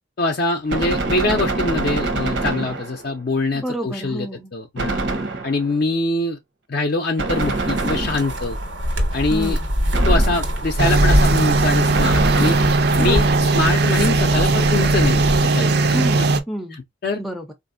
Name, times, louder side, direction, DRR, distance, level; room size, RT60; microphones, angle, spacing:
voice 1, 0.2-5.0 5.4-6.4 6.7-8.6 9.1-9.6 10.1-12.6 13.0-13.2 13.5-16.0 17.0-17.2, left 2 dB, 55° left, 0.5 m, -23 dB
Gunshot gunfire, 0.7-3.2 4.8-5.8 7.2-8.6 9.9-10.7 11.9-13.1, right 2 dB, 70° right, 0.9 m, -25 dB
voice 2, 3.5-4.5 9.3-9.7 13.0-13.5 15.9-16.8 17.2-17.5, right 1 dB, ahead, 0.4 m, -29 dB
sound 1, 7.3-15.4, equal, 85° right, 1.3 m, -23 dB
sound 2, 10.8-16.4, right 3 dB, 55° right, 0.5 m, -18 dB
4.1 x 2.5 x 2.5 m
head